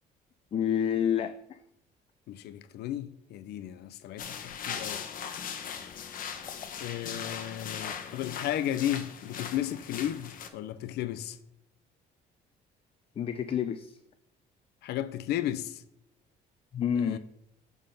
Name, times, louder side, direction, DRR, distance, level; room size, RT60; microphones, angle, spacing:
voice 1, 0.5-1.6 13.2-14.0 16.7-17.2, left 8 dB, 35° left, 0.4 m, -29 dB
voice 2, 2.3-5.0 5.9-6.1 6.8-11.4 14.8-15.8 17.0-17.2, left 12 dB, 75° left, 0.6 m, -34 dB
sound 1, 4.2-10.5, left 7 dB, 55° left, 0.9 m, -39 dB
9.1 x 3.7 x 5.6 m
cardioid pair, 110°, 17 cm